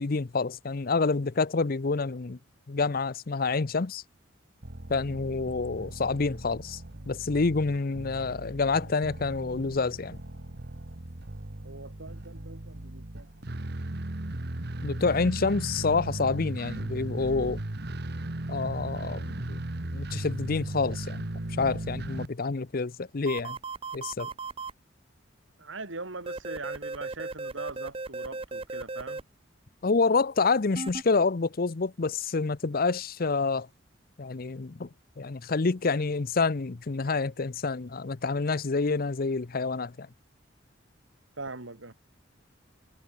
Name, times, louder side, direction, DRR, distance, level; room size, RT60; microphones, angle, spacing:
voice 1, 0.0-2.4 2.7-4.0 4.9-6.8 7.1-10.2 14.8-17.6 18.5-19.6 19.9-21.2 21.6-23.6 23.9-24.3 29.8-33.7 34.2-34.9 35.2-40.1, left 4 dB, 50° left, 0.7 m, -28 dB
sound 1, 4.6-22.3, right 1 dB, 55° right, 1.6 m, -37 dB
voice 2, 11.6-13.3 25.6-29.2 41.4-41.9, right 3 dB, 80° right, 3.1 m, -41 dB
sound 2, 23.3-24.7 26.3-29.2 30.8-31.0, right 3 dB, 30° right, 0.9 m, -36 dB
head